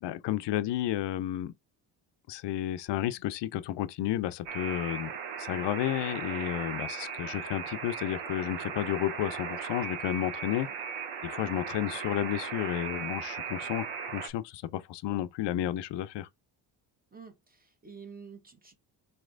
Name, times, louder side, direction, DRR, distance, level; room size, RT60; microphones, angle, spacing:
voice 1, 0.0-1.5 2.3-5.1 5.4-10.7 11.2-16.3, left 13 dB, 65° left, 0.5 m, -32 dB
Alarm, 4.5-14.3, right 6 dB, 85° right, 0.8 m, -37 dB
voice 2, 17.1-18.7, right 6 dB, 20° right, 1.2 m, -49 dB
4.2 x 3.2 x 2.5 m
cardioid pair, 90°, 45 cm